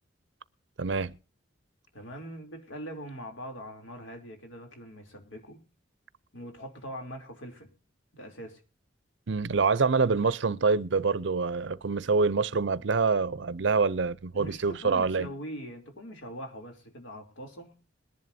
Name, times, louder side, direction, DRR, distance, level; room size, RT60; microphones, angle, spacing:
voice 1, 0.8-1.2 9.3-15.3, right 4 dB, 65° right, 0.6 m, -26 dB
voice 2, 1.9-5.6 6.3-7.7 8.1-8.6 14.3-17.8, equal, 75° left, 3.2 m, -42 dB
21.5 x 11.0 x 2.7 m
head